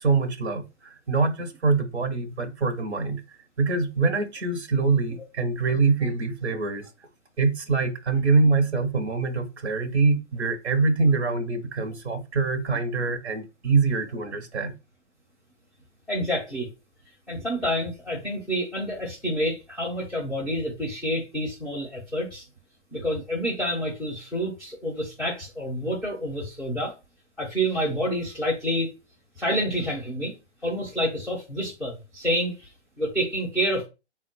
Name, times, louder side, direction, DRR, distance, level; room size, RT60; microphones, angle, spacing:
voice 1, 0.0-3.2 3.6-6.8 7.4-14.7, right 4 dB, 65° right, 0.8 m, -24 dB
voice 2, 16.1-16.7 17.3-22.4 22.9-26.9 27.4-28.9 29.4-30.3 30.6-32.7 33.0-33.9, equal, ahead, 0.4 m, -28 dB
3.7 x 2.1 x 4.0 m
figure-of-eight pair, 125°, 35 cm